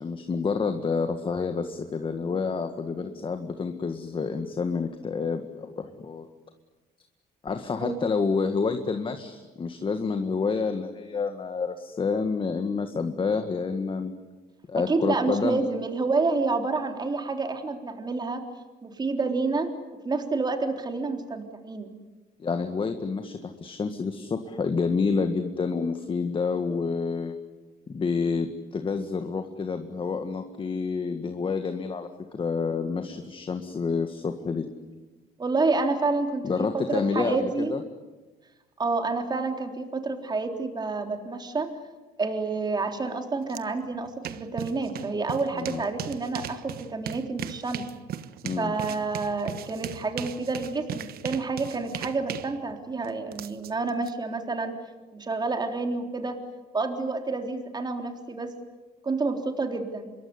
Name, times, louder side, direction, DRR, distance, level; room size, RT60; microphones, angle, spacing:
voice 1, 0.0-6.3 7.4-14.1 14.7-15.6 22.4-27.4 27.9-32.1 32.3-34.7 36.4-37.8 45.5-45.8 48.4-48.7, left 5 dB, 30° left, 7 dB, 1.9 m, -28 dB
voice 2, 14.9-18.4 18.8-19.7 20.0-21.9 35.4-37.7 38.8-41.7 42.2-47.9 48.6-54.7 55.1-56.4 56.7-58.5 59.0-60.1, right 3 dB, 25° right, 5 dB, 3.7 m, -29 dB
sound 1, 43.5-43.6 43.9-54.1, right 10 dB, 65° right, 1.3 m, -38 dB
26.0 x 22.5 x 9.7 m, 1.2 s
cardioid pair, 110°, 17 cm